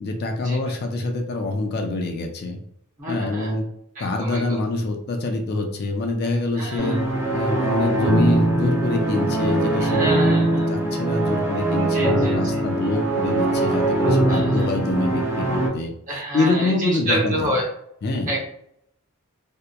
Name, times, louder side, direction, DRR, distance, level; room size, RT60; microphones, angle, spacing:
voice 1, 0.0-2.6 3.1-3.7 4.0-7.0 7.3-17.6 18.0-18.4, left 2 dB, 45° left, 3 dB, 0.4 m, -25 dB
voice 2, 3.0-3.5 4.0-4.6 6.5-7.0 9.8-10.7 11.8-12.6 14.3-14.7 16.1-17.7 18.3-18.4, equal, 35° right, -3 dB, 0.8 m, -28 dB
sound 1, 6.8-15.7, right 2 dB, 10° right, 0.5 m, -21 dB
2.7 x 2.1 x 2.2 m, 0.72 s
head